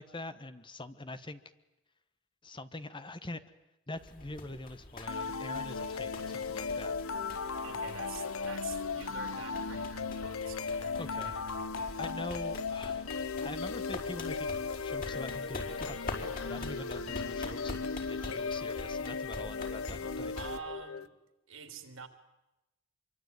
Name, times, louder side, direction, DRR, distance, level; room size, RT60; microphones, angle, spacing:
voice 1, 0.0-1.4 2.4-3.4 3.9-6.9 11.0-11.4 11.8-13.1 13.4-20.4, left 2 dB, 25° left, 11 dB, 1.2 m, -44 dB
sound 1, 4.0-20.6, left 2 dB, 45° left, 5.2 m, -46 dB
sound 2, 5.1-21.1, left 5 dB, 85° left, 1.0 m, -36 dB
voice 2, 7.6-11.5 20.3-21.1 21.5-22.1, right 5 dB, 65° right, 8 dB, 3.2 m, -46 dB
26.5 x 24.0 x 9.5 m, 0.97 s
head